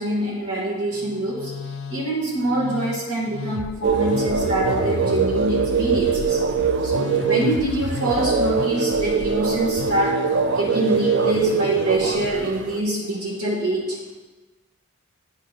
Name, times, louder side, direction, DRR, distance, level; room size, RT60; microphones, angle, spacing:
voice 1, 0.0-1.5 1.9-6.4 6.8-10.2 10.5-14.0, right 1 dB, 90° right, -5 dB, 1.9 m, -25 dB
Musical instrument, 0.9-12.7, left 4 dB, 75° left, 0.4 m, -34 dB
sound 1, 3.8-12.8, right 5 dB, 50° right, 0.4 m, -23 dB
8.6 x 5.3 x 4.1 m, 1.2 s
head